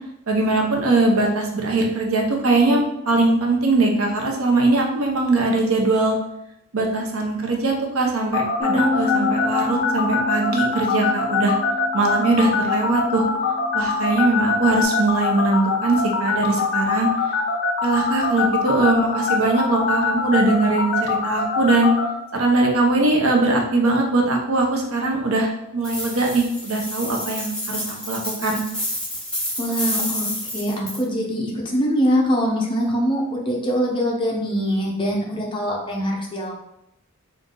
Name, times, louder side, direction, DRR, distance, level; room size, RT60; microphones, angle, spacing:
voice 1, 0.3-6.1 6.7-11.5 11.9-13.2 13.7-17.1 17.8-21.9 22.3-28.6, right 2 dB, 80° right, 1 dB, 0.8 m, -21 dB
sound 1, 8.3-22.1, left 5 dB, 60° left, 0.6 m, -22 dB
Bass guitar, 8.6-14.8, left 3 dB, 30° right, 1.1 m, -30 dB
sound 2, 25.8-31.0, left 1 dB, 5° left, 1.0 m, -29 dB
voice 2, 29.6-30.3 30.5-36.6, equal, 25° left, -2 dB, 0.7 m, -23 dB
3.8 x 2.7 x 3.7 m, 0.84 s
head